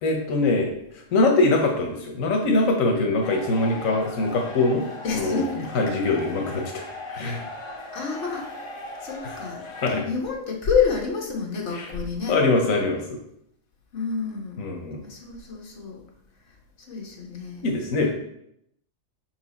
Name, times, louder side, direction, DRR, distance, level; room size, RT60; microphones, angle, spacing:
voice 1, 0.0-4.8 5.1-5.4 5.7-6.8 7.1-7.4 9.2-9.4 9.8-10.0 11.7-11.9 12.3-13.2 14.6-15.0 17.6-18.1, left 2 dB, 90° left, 1 dB, 1.2 m, -23 dB
sound 1, 3.2-10.0, left 2 dB, 30° left, 0.7 m, -38 dB
voice 2, 5.0-5.7 7.9-8.5 9.0-9.6 9.9-12.3 13.9-14.6 15.0-16.0 16.9-17.6, left 5 dB, 60° left, -1 dB, 1.4 m, -28 dB
5.6 x 4.6 x 4.1 m, 0.76 s
omnidirectional pair, 1.4 m